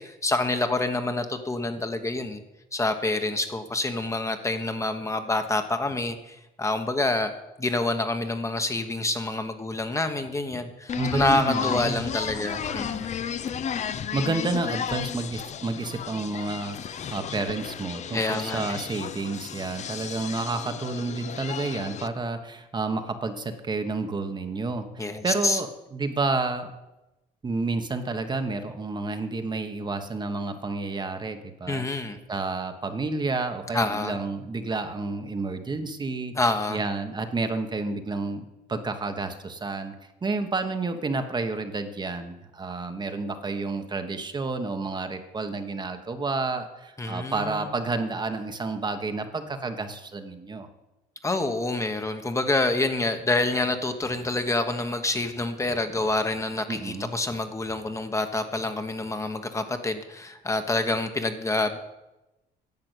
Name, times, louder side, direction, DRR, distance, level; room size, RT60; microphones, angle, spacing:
voice 1, 0.0-2.4 2.7-7.3 7.6-13.1 18.1-18.8 25.0-25.6 31.7-32.2 33.7-34.1 36.4-36.8 47.0-47.7 51.2-61.8, left 2 dB, 15° left, 7 dB, 1.2 m, -27 dB
wildwood moreyraceawinner, 10.9-22.1, left 8 dB, 45° left, 0.7 m, -33 dB
voice 2, 10.9-12.1 12.3-12.6 13.9-26.7 27.4-32.0 32.3-36.3 36.7-38.4 38.7-39.9 40.2-50.7 56.7-57.2, right 3 dB, 25° right, 7 dB, 1.2 m, -30 dB
10.5 x 7.6 x 8.1 m, 0.97 s
cardioid pair, 110°, 17 cm